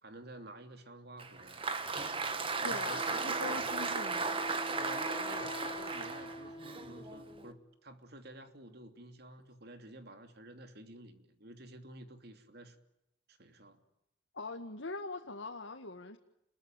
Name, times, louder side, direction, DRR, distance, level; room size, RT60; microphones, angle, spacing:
voice 1, 0.0-1.8 2.6-3.6 4.8-12.8 13.3-13.8, right 1 dB, 55° right, 3.0 m, -50 dB
Applause, 1.2-7.5, right 4 dB, 30° right, 1.9 m, -36 dB
voice 2, 2.6-4.4 14.3-16.2, left 3 dB, 80° left, 1.9 m, -42 dB
Wind instrument woodwind instrument, 2.9-7.7, left 1 dB, 25° left, 1.2 m, -46 dB
29.5 x 21.5 x 9.1 m
head